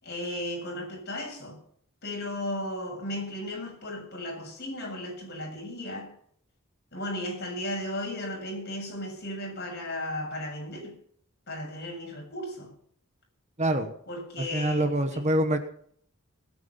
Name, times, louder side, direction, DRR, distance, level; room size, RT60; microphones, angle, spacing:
voice 1, 0.0-1.6 2.0-6.1 6.9-11.0 11.5-12.7 14.1-15.2, left 1 dB, 45° left, 7.6 m, -35 dB
voice 2, 13.6-13.9 14.5-15.6, right 1 dB, 30° right, 1.1 m, -25 dB
20.0 x 9.3 x 5.7 m
head